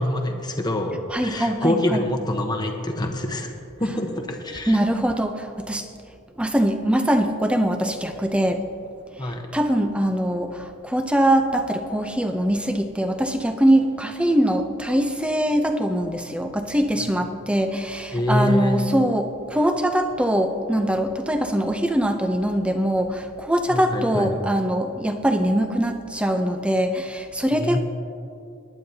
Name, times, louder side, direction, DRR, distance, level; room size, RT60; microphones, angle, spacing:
voice 1, 0.0-3.5 3.8-4.8 9.2-9.4 18.1-18.8 23.7-24.3 27.5-27.8, left 1 dB, 20° left, 3 dB, 1.0 m, -25 dB
voice 2, 1.1-2.0 4.7-5.8 6.4-8.6 9.5-27.8, right 1 dB, 5° right, 6 dB, 0.6 m, -22 dB
19.5 x 10.5 x 2.8 m, 2.6 s
head